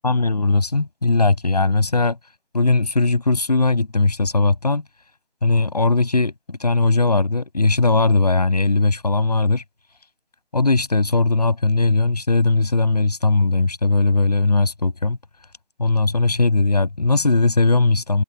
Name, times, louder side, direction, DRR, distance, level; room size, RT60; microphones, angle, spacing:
voice 1, 0.0-2.2 2.5-4.8 5.4-9.6 10.5-15.2 15.8-18.2, left 3 dB, 35° left, 7.9 m, -19 dB
figure-of-eight pair, 170°, 34 cm